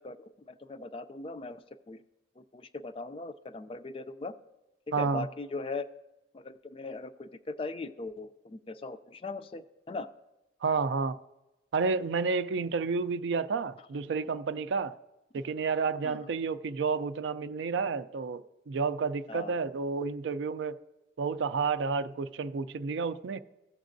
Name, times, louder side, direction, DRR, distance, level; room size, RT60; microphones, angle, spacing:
voice 1, 0.0-2.0 2.4-4.4 5.0-5.9 6.3-10.1 16.0-16.3 19.3-19.5, left 3 dB, 30° left, 0.3 m, -40 dB
voice 2, 4.9-5.3 10.6-11.2 11.7-14.9 15.3-18.4 18.7-20.8 21.2-23.4, right 5 dB, 70° right, 0.4 m, -30 dB
16.0 x 7.1 x 2.6 m
head